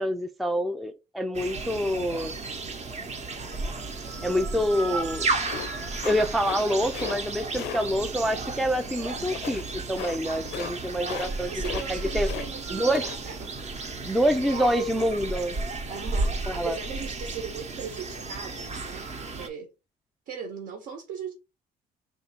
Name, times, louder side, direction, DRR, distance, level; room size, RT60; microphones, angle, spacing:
voice 1, 0.0-2.3 4.2-5.3 6.0-11.5 11.9-12.3 12.7-13.1 14.1-15.6 16.5-16.8, equal, ahead, 0.3 m, -26 dB
sound 1, 1.3-19.5, right 3 dB, 40° right, 0.9 m, -33 dB
sound 2, 5.5-6.7 6.9-7.2 7.5-7.8 9.3-9.6 10.0-10.2 10.4-10.7 11.0-11.3 11.6-12.5 12.8-13.2, left 10 dB, 75° left, 0.4 m, -36 dB
voice 2, 11.4-13.4 14.5-15.2 15.9-19.7 20.3-21.3, right 6 dB, 70° right, 1.2 m, -38 dB
3.5 x 2.6 x 4.2 m
cardioid pair, 110°, 17 cm